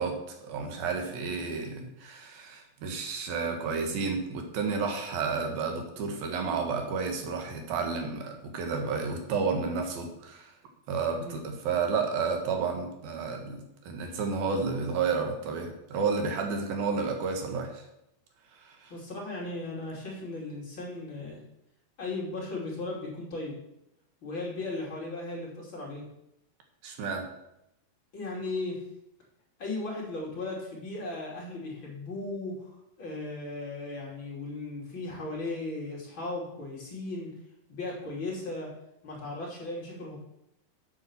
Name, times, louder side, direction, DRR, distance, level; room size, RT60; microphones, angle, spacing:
voice 1, 0.0-10.5 10.9-17.8 18.5-18.9 26.8-27.2, right 5 dB, 80° right, 3 dB, 3.3 m, -31 dB
voice 2, 18.9-21.4 22.0-23.5 24.2-26.0 28.1-28.8 29.6-37.3 37.7-38.7 39.0-40.2, left 2 dB, 35° left, -3 dB, 3.1 m, -36 dB
8.2 x 7.3 x 7.2 m, 0.82 s
omnidirectional pair, 4.1 m